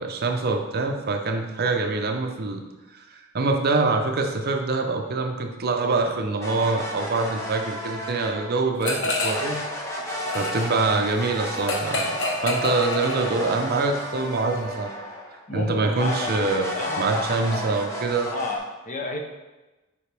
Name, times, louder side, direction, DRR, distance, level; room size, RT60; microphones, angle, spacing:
voice 1, 0.0-2.6 2.9-9.6 10.3-14.9 15.5-16.7 17.0-18.3, right 3 dB, 50° right, 4 dB, 0.7 m, -25 dB
sound 1, 6.4-8.6 9.2-15.4 15.9-18.6, equal, 15° left, 1.0 m, -33 dB
sound 2, 8.8-9.6 9.9-13.7, left 2 dB, 60° left, 1.0 m, -28 dB
voice 2, 15.5-16.5 16.7-17.8 18.2-19.2, left 2 dB, 40° left, 2 dB, 0.8 m, -31 dB
7.2 x 4.9 x 3.4 m, 1.1 s
head